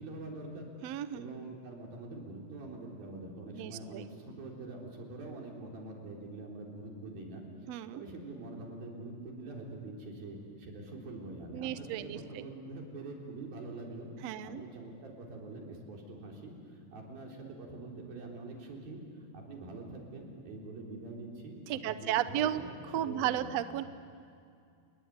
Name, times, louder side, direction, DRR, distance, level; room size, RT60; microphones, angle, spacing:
voice 1, 0.0-0.7 1.1-19.0 19.3-22.7 23.0-23.5, right 2 dB, 90° right, 0 dB, 5.8 m, -45 dB
voice 2, 0.8-1.3 3.5-4.1 7.7-8.0 11.5-12.5 14.2-14.6 21.7-22.6 22.9-23.8, right 11 dB, 70° right, 12 dB, 1.6 m, -34 dB
30.0 x 20.5 x 9.6 m, 2.4 s
omnidirectional pair, 4.1 m